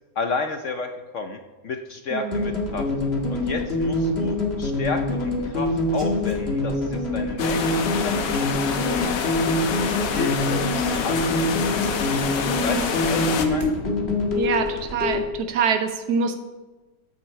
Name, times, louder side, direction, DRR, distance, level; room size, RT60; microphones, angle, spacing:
voice 1, 0.2-2.9 3.3-8.4 8.8-9.2 10.0-10.7 11.0-11.8 12.5-13.8, left 4 dB, 60° left, 6 dB, 0.8 m, -32 dB
voice 2, 2.1-2.4 12.7-12.9 14.3-16.3, right 6 dB, 70° right, 7 dB, 1.4 m, -25 dB
sound 1, 2.3-15.2, left 2 dB, 40° left, 1.8 m, -25 dB
sound 2, 5.5-6.9 8.3-9.0 10.4-10.5 10.8-11.7 12.1-12.2 12.5-13.7 14.0-14.5, right 2 dB, 35° right, 1.7 m, -44 dB
sound 3, 7.4-13.5, left 6 dB, 85° left, 1.6 m, -27 dB
13.5 x 8.0 x 4.3 m, 1.2 s
omnidirectional pair, 1.9 m